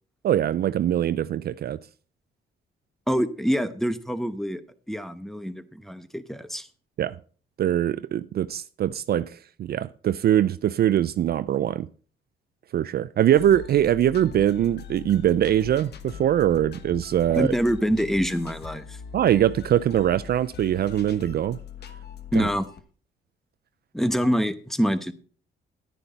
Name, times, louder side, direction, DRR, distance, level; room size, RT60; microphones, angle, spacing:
voice 1, 0.2-1.8 7.0-7.2 7.6-11.9 12.7-17.5 19.1-21.6 22.4-22.5, right 11 dB, 55° right, 0.4 m, -22 dB
voice 2, 3.1-4.6 4.9-6.7 17.3-19.0 22.3-22.7 23.9-25.1, equal, ahead, 0.9 m, -25 dB
sound 1, 13.3-22.8, left 7 dB, 55° left, 1.2 m, -41 dB
11.0 x 9.8 x 4.0 m
cardioid pair, 90°, 20 cm